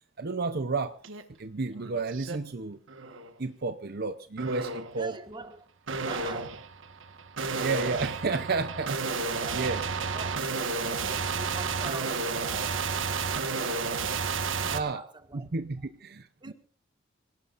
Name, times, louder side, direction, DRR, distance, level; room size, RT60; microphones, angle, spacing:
voice 1, 0.2-1.0 1.4-2.8 3.4-5.1 7.6-9.8 14.7-15.0 15.3-16.5, right 4 dB, 55° right, 0.8 m, -32 dB
sound 1, 1.0-1.2 1.6-2.4 2.9-3.3 4.4-5.0 5.9-14.8, right 4 dB, 90° right, 1.5 m, -32 dB
voice 2, 5.0-6.7 9.3-9.8 10.1-14.0 14.2-15.5 16.4-16.5, right 3 dB, 25° right, 1.8 m, -45 dB
26.5 x 18.0 x 2.6 m
head